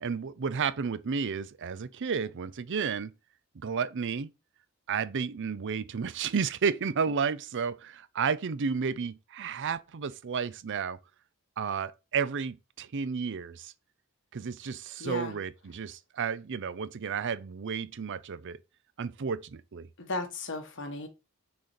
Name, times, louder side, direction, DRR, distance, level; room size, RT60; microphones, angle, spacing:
voice 1, 0.0-3.1 3.6-4.3 4.9-11.0 11.6-13.7 14.3-18.6 19.0-19.9, right 6 dB, 55° right, 0.5 m, -32 dB
voice 2, 15.0-15.3 20.0-21.1, left 2 dB, 60° left, 1.5 m, -35 dB
6.4 x 4.3 x 5.2 m
head